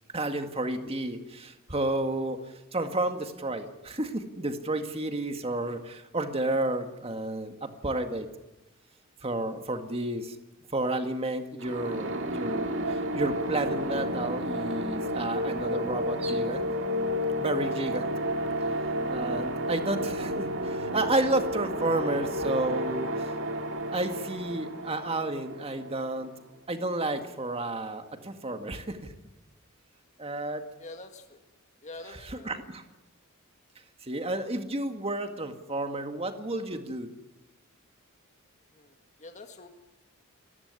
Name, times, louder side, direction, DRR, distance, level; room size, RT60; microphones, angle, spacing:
voice 1, 0.1-2.4 2.7-8.3 9.2-10.4 10.7-16.6 17.4-18.1 19.1-23.3 23.9-26.3 26.7-29.1 30.2-30.6 32.1-32.8 34.0-37.1, right 2 dB, 30° right, 6 dB, 1.9 m, -31 dB
sound 1, 11.6-26.3, equal, 60° right, 2.3 m, -31 dB
voice 2, 30.8-31.4 31.8-32.6 38.7-39.7, left 2 dB, 35° left, 5 dB, 1.8 m, -46 dB
30.0 x 15.0 x 9.7 m, 1.0 s
head